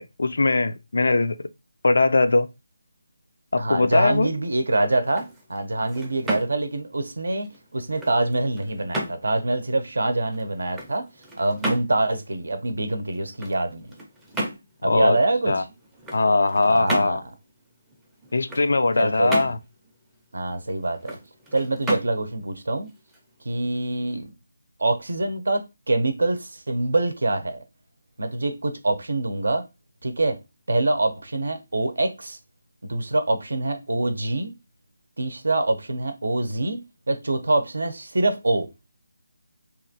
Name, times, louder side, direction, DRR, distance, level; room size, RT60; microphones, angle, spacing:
voice 1, 0.0-1.4 1.8-2.5 3.5-4.3 14.8-15.2 15.5-15.6 16.1-17.2 18.3-19.6, left 3 dB, 70° left, 0.3 m, -20 dB
voice 2, 3.6-11.1 11.4-13.9 14.8-15.7 16.6-17.2 19.0-19.5 20.3-21.2 21.5-22.9 23.4-24.3 24.8-27.6 28.2-29.6 30.0-30.4 30.7-32.4 32.8-34.5 35.2-36.8 37.1-38.7, right 2 dB, 75° right, 0.6 m, -25 dB
sound 1, 5.0-23.8, right 1 dB, 5° right, 0.5 m, -35 dB
2.9 x 2.4 x 2.6 m
figure-of-eight pair, 160°, 0 cm